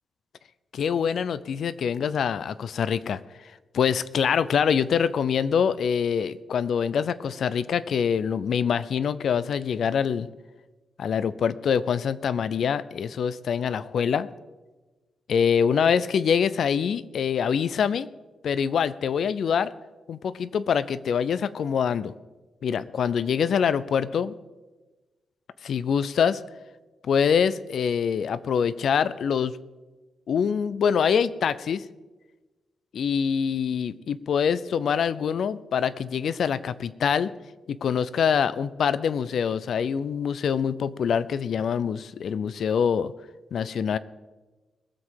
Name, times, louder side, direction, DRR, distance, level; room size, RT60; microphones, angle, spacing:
voice 1, 0.7-3.2 3.7-10.3 11.0-14.3 15.3-18.1 18.4-19.7 20.1-22.1 22.6-24.3 25.6-26.4 27.1-29.5 30.3-31.8 32.9-37.3 37.7-43.1 43.5-44.0, left 7 dB, 60° left, 17 dB, 0.5 m, -25 dB
20.5 x 7.6 x 4.8 m, 1.2 s
wide cardioid pair, 165°, 0 cm